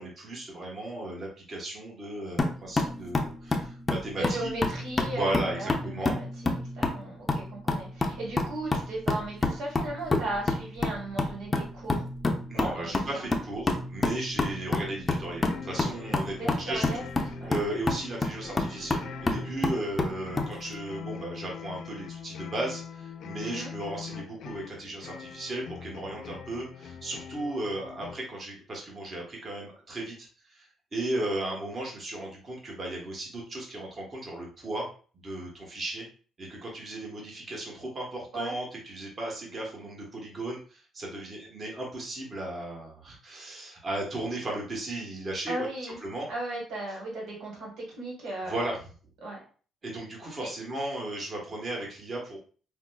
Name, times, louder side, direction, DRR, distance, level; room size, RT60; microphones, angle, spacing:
voice 1, 0.0-4.5 5.2-6.1 12.5-17.0 17.5-30.7 30.9-34.9 35.2-36.0 36.4-45.5 46.0-46.3 48.5-48.8 49.8-52.4, right 1 dB, 35° right, -2 dB, 1.1 m, -35 dB
sound 1, 2.4-20.5, left 2 dB, 25° left, 0.6 m, -30 dB
voice 2, 4.2-6.3 6.7-12.0 12.5-13.3 16.4-17.0 17.4-17.5 23.4-23.7 38.3-38.5 45.5-46.0 46.3-48.7 49.2-49.4 50.4-50.5, right 2 dB, 80° right, -2 dB, 1.3 m, -36 dB
sound 2, 15.4-28.2, left 7 dB, 70° left, 0.4 m, -43 dB
4.9 x 2.0 x 2.2 m, 0.40 s
cardioid pair, 95°, 0 cm